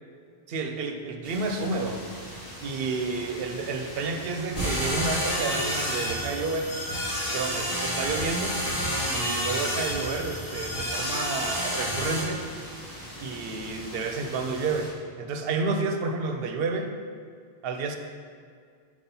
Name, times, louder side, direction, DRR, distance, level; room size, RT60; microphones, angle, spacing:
voice 1, 0.5-2.0 2.6-6.7 7.3-8.6 9.0-12.5 13.2-14.9 15.2-16.9 17.6-18.0, right 3 dB, 70° right, 6 dB, 0.8 m, -30 dB
sound 1, 1.2-14.9, equal, 20° left, 1.4 m, -42 dB
sound 2, 4.5-12.2, equal, 55° left, 1.9 m, -29 dB
4.7 x 4.2 x 5.3 m, 2.2 s
omnidirectional pair, 1.1 m